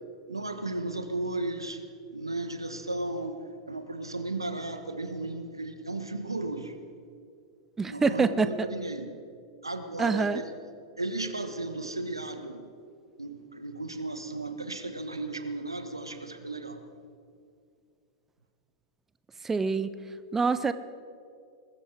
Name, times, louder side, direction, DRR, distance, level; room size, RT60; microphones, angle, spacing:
voice 1, 0.3-1.8 2.1-6.8 7.8-9.1 9.6-10.5 11.0-12.7 13.2-16.8, right 2 dB, 85° right, 8 dB, 1.3 m, -35 dB
voice 2, 7.8-8.5 10.0-10.4 19.4-19.9 20.3-20.7, right 4 dB, 15° right, 13 dB, 0.6 m, -25 dB
21.0 x 13.5 x 4.8 m, 2.4 s
figure-of-eight pair, 95°, 2 cm